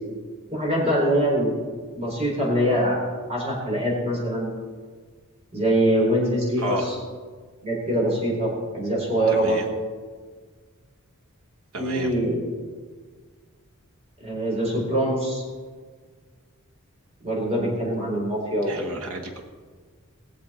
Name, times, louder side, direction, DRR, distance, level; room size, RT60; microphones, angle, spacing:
voice 1, 0.5-1.5 1.9-3.0 3.3-4.5 5.5-6.8 7.6-9.6 11.8-12.4 14.2-15.4 17.2-18.8, right 1 dB, 30° right, -3 dB, 4.1 m, -23 dB
voice 2, 6.6-6.9 9.3-9.7 11.7-12.1 18.6-19.4, right 1 dB, 75° right, 2 dB, 1.2 m, -32 dB
21.0 x 7.1 x 4.3 m, 1.5 s
head